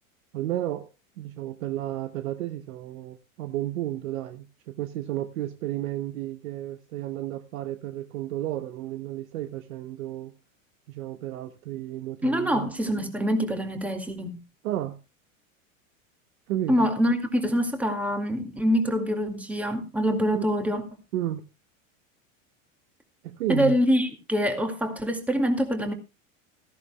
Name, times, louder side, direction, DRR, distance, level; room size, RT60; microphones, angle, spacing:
voice 1, 0.3-0.9 1.2-10.3 10.9-12.7 14.6-15.0 16.5-16.9 20.3-20.5 21.1-21.4 23.2-23.8, right 13 dB, 80° right, 1.0 m, -32 dB
voice 2, 12.2-14.4 16.7-20.8 23.5-25.9, equal, 5° right, 2.1 m, -25 dB
16.5 x 14.5 x 2.3 m
supercardioid pair, 110°, 40 cm